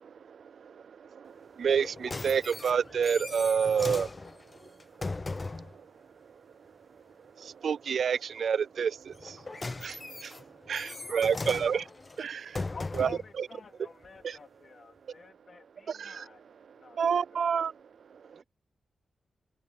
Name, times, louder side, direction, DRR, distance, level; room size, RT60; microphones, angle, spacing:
voice 1, 0.0-4.1 4.6-4.7 5.0-5.1 5.6-5.8 7.4-11.8 12.2-12.5 13.0-13.5 14.2-14.4 15.9-16.3 16.9-17.7 18.1-18.3, right 7 dB, 65° right, 0.3 m, -30 dB
sound 1, 1.7-5.8 9.1-13.3 14.0-14.1, left 3 dB, 25° left, 0.7 m, -38 dB
voice 2, 10.7-11.7 12.3-12.7 13.4-13.5 13.8-13.9 18.3-18.4, right 4 dB, 35° right, 6.8 m, -59 dB
voice 3, 12.7-16.5 16.7-17.0 17.3-17.4, left 5 dB, 45° left, 3.4 m, -49 dB
wide cardioid pair, 150°, 0 cm